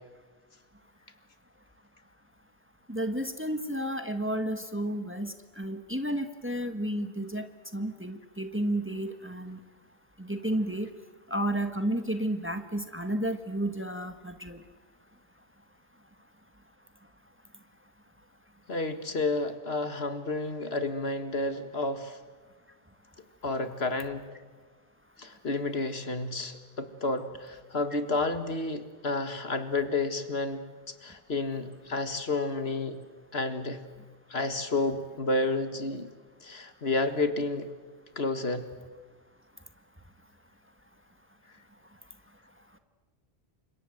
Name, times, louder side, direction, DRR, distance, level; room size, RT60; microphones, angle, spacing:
voice 1, 2.9-7.5 7.7-9.6 10.2-10.9 11.3-14.6, right 1 dB, 10° right, 7 dB, 1.4 m, -32 dB
voice 2, 18.7-22.2 23.4-24.2 25.2-33.0 33.3-33.8 34.3-36.1 36.4-37.7 38.2-38.7, left 2 dB, 70° left, 9 dB, 2.1 m, -31 dB
29.5 x 25.0 x 7.9 m, 1.4 s
omnidirectional pair, 1.1 m